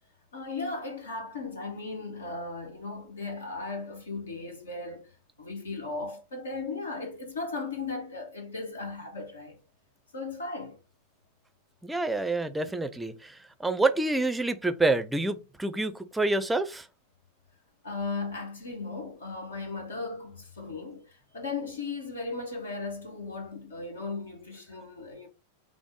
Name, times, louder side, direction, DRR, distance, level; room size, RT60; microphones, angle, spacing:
voice 1, 0.3-5.1 5.4-9.6 10.1-10.8 17.8-25.3, left 3 dB, 70° left, 1.4 m, -36 dB
voice 2, 11.8-13.3 13.6-16.8, right 2 dB, 5° right, 0.6 m, -27 dB
5.9 x 2.0 x 3.8 m
figure-of-eight pair, 90°, 0 cm